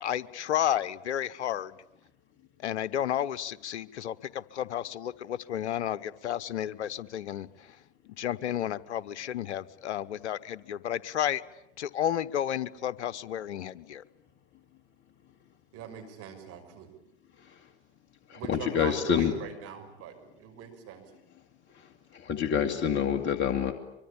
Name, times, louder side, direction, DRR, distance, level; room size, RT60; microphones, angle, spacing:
voice 1, 0.0-1.8 2.6-7.8 8.1-11.4 11.8-14.0, left 11 dB, 80° left, 16 dB, 1.1 m, -32 dB
voice 2, 15.7-16.9 18.3-21.0, right 8 dB, 45° right, 6 dB, 6.4 m, -41 dB
voice 3, 18.3-19.3 22.1-23.7, left 8 dB, 30° left, 5 dB, 2.2 m, -27 dB
24.5 x 24.0 x 8.8 m, 0.87 s
hypercardioid pair, 95°, 34 cm